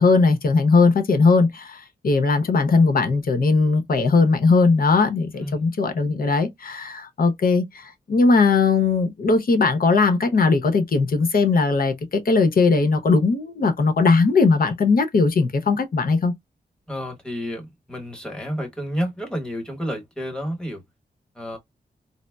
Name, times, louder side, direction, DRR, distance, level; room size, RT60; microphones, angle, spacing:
voice 1, 0.0-16.3, left 4 dB, 60° left, 0.7 m, -19 dB
voice 2, 16.9-20.8 21.3-21.6, equal, 5° left, 1.0 m, -30 dB
4.0 x 2.0 x 2.2 m
wide cardioid pair, 105°, 17 cm